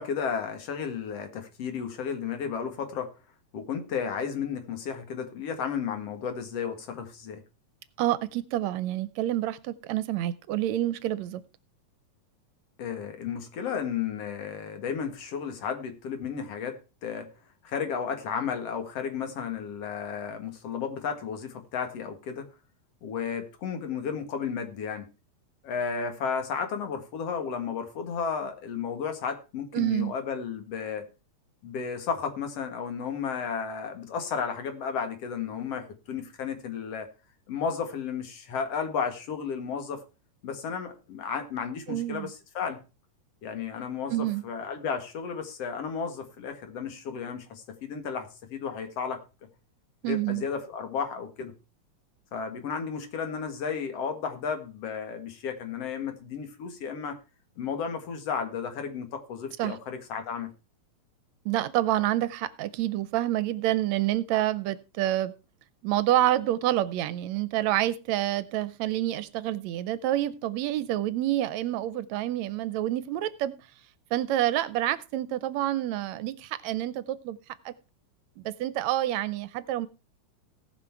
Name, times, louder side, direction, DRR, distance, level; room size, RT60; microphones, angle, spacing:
voice 1, 0.0-3.1 3.5-7.4 12.8-17.3 17.6-22.5 23.0-25.1 25.6-31.1 31.6-37.1 37.5-40.0 40.4-42.8 43.4-49.2 50.0-51.5 52.3-57.2 57.6-60.5, left 6 dB, 60° left, 7 dB, 2.6 m, -33 dB
voice 2, 8.0-11.4 29.7-30.1 41.9-42.3 44.1-44.4 50.0-50.4 59.6-59.8 61.5-65.3 65.8-73.5 74.1-77.4 77.7-77.8 78.4-79.9, right 14 dB, 75° right, 16 dB, 1.9 m, -28 dB
18.0 x 6.0 x 4.5 m, 0.31 s
omnidirectional pair, 3.3 m